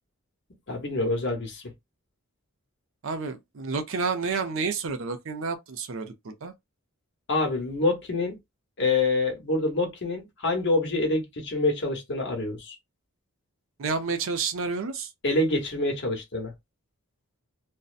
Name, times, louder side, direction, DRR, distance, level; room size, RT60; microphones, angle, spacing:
voice 1, 0.7-1.6 7.3-8.4 8.8-12.8 15.2-16.5, left 2 dB, 55° left, 0.9 m, -26 dB
voice 2, 3.0-6.5 13.8-15.1, right 4 dB, 60° right, 0.5 m, -30 dB
2.6 x 2.1 x 2.4 m
head